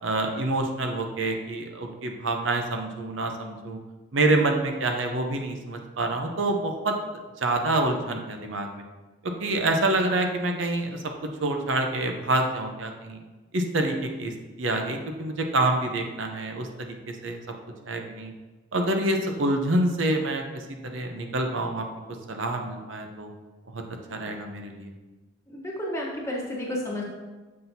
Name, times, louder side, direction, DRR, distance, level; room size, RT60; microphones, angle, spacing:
voice 1, 0.0-3.8 4.1-6.9 7.4-8.8 9.2-11.0 11.4-13.2 13.5-14.3 14.6-17.4 17.9-18.3 18.7-20.6 20.9-21.9 22.3-23.3 23.7-23.8 24.1-24.9, right 2 dB, 75° right, 3 dB, 0.7 m, -27 dB
voice 2, 25.5-27.0, left 1 dB, 15° left, -3 dB, 1.1 m, -31 dB
7.4 x 5.8 x 2.7 m, 1.2 s
head